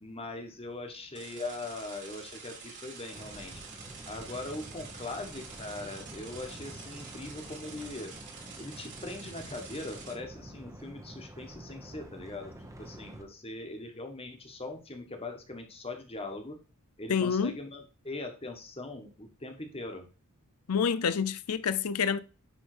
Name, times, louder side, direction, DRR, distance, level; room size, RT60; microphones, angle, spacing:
voice 1, 0.0-3.5 4.1-8.1 8.6-12.5 12.8-16.6 17.0-20.1, left 2 dB, 25° left, 1.7 m, -41 dB
sound 1, 1.1-10.1, right 5 dB, 55° right, 3.1 m, -47 dB
sound 2, 3.1-13.2, right 1 dB, 15° right, 1.2 m, -48 dB
voice 2, 17.1-17.5 20.7-22.2, left 6 dB, 85° left, 0.5 m, -28 dB
10.0 x 3.8 x 5.1 m
head